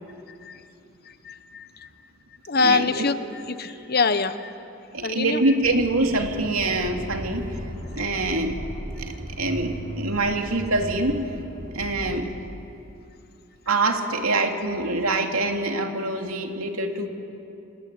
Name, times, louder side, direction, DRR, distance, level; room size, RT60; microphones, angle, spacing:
voice 1, 1.2-1.9 2.5-3.1 3.6-4.5 5.0-5.4, left 4 dB, 45° left, 12 dB, 1.0 m, -24 dB
voice 2, 2.5-3.1 3.7-3.9 4.9-7.6 7.9-8.6 9.0-11.3 11.7-12.3 13.7-17.1, right 2 dB, 85° right, 3 dB, 2.7 m, -25 dB
Accelerating revving vroom, 5.6-12.2, equal, 55° right, 4.5 m, -36 dB
28.0 x 20.5 x 9.6 m, 2.7 s
head